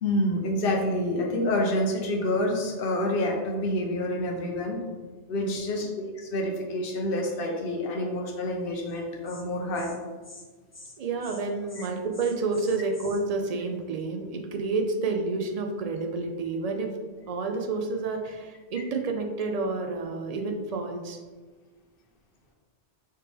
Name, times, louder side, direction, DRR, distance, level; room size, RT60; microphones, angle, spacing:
voice 1, 0.0-4.8 5.3-5.9 6.1-9.9, left 1 dB, 55° left, 0 dB, 1.0 m, -28 dB
voice 2, 5.4-5.7 11.0-16.9 17.3-21.2, right 3 dB, 55° right, 4 dB, 0.4 m, -29 dB
Insect, 8.9-9.0 9.2-9.4 9.7-10.0 10.2-10.4 10.7-10.9 11.2-11.4 11.7-13.2, left 2 dB, 25° left, 0.3 m, -47 dB
4.4 x 3.3 x 3.4 m, 1.3 s
omnidirectional pair, 1.1 m